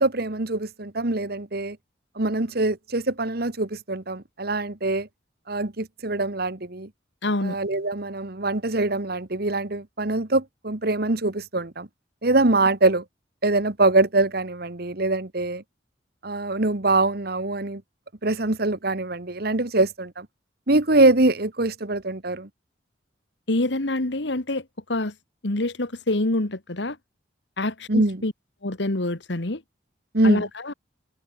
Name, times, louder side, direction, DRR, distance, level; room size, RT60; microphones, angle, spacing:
voice 1, 0.0-1.8 2.1-5.1 5.5-6.9 7.4-11.9 12.2-13.0 13.4-15.6 16.2-17.8 18.2-20.3 20.7-22.5 27.9-28.2 30.1-30.5, right 2 dB, 55° right, 1.6 m, -23 dB
voice 2, 7.2-7.6 23.5-24.6 24.9-25.1 25.4-27.0 27.6-28.3 28.6-29.6 30.2-30.7, left 2 dB, 65° left, 1.7 m, -26 dB
head